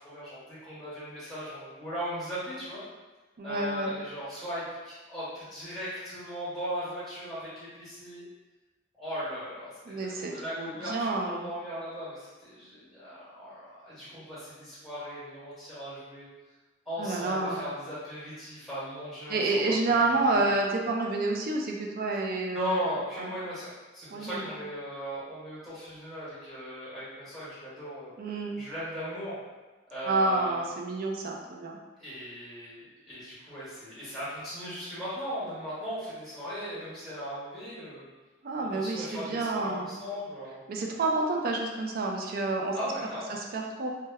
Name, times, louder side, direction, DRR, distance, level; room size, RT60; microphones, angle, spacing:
voice 1, 0.0-2.8 3.4-8.2 9.0-9.7 10.0-16.3 16.8-19.7 20.3-20.5 22.5-28.1 28.5-29.4 29.9-30.6 32.0-38.1 38.7-40.6 42.7-43.4, equal, ahead, -12 dB, 1.1 m, -38 dB
voice 2, 3.4-3.9 9.9-11.5 17.0-17.7 19.3-22.9 23.2-23.3 24.1-24.5 28.2-28.6 30.1-31.8 38.4-40.0 40.7-42.8 43.3-44.0, right 3 dB, 50° right, 1 dB, 0.4 m, -29 dB
2.1 x 2.1 x 3.4 m, 1.2 s
head